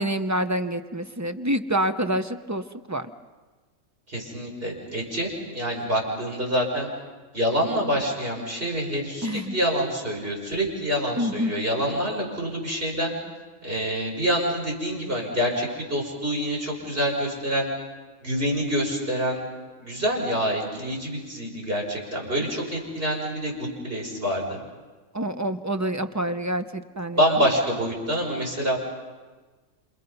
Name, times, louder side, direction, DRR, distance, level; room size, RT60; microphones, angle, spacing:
voice 1, 0.0-3.1 9.2-9.5 11.2-11.5 25.1-27.4, right 1 dB, 15° right, 9 dB, 0.7 m, -27 dB
voice 2, 4.1-6.9 7.3-13.1 13.6-17.7 18.2-19.4 19.8-24.6 27.1-28.8, equal, 50° right, -1 dB, 5.8 m, -26 dB
28.0 x 28.0 x 5.5 m, 1.3 s
omnidirectional pair, 1.3 m